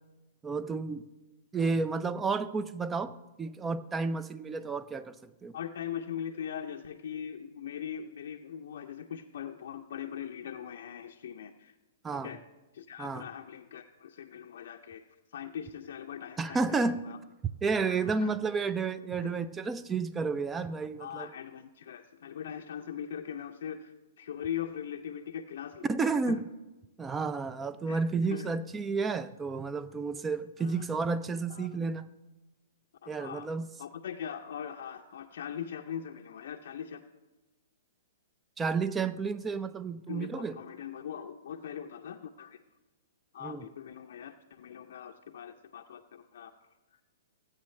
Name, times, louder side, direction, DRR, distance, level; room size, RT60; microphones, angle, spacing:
voice 1, 0.4-1.1 1.5-5.6 12.0-12.3 13.0-13.2 16.4-17.0 17.4-21.3 25.8-26.4 27.0-32.1 33.1-33.7 38.6-40.6 43.4-43.7, right 4 dB, 15° right, 0.4 m, -31 dB
voice 2, 5.5-11.7 12.2-12.4 12.7-15.0 15.3-17.2 17.8-18.3 19.2-19.3 21.0-26.4 27.9-28.0 28.3-28.5 30.6-30.9 31.5-31.7 33.0-33.5 33.8-37.0 40.1-42.6 43.3-46.5, left 9 dB, 70° left, 0.5 m, -41 dB
14.5 x 8.6 x 3.2 m
hypercardioid pair, 145°, 0 cm